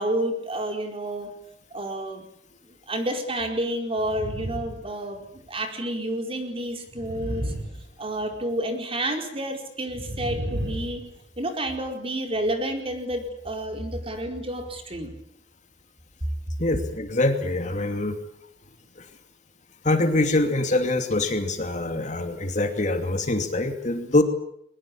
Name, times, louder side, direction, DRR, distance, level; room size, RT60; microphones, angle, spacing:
voice 1, 0.0-1.3 1.7-2.2 2.9-7.5 8.0-11.0 11.4-15.1, right 1 dB, 30° right, 4 dB, 4.7 m, -30 dB
sound 1, 4.0-4.9 5.2-5.4 6.9-8.4 9.9-11.2, right 1 dB, 70° right, 6.4 m, -33 dB
voice 2, 16.6-18.2 19.0-19.1 19.8-24.2, left 2 dB, 45° left, 7 dB, 2.7 m, -24 dB
23.0 x 20.5 x 8.8 m, 0.70 s
head